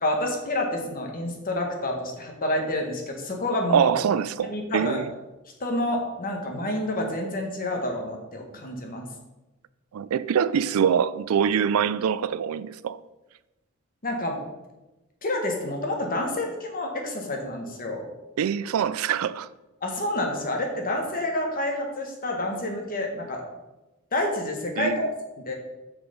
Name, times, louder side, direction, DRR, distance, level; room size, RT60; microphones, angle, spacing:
voice 1, 0.0-3.9 4.4-5.0 5.6-9.1 14.0-14.4 15.2-18.1 19.8-23.4 24.1-25.1 25.4-25.5, left 1 dB, 40° left, 1.6 m, -28 dB
voice 2, 3.7-5.1 9.9-13.0 18.4-19.5 24.8-25.0, right 8 dB, 85° right, 0.4 m, -24 dB
6.5 x 6.0 x 5.1 m
head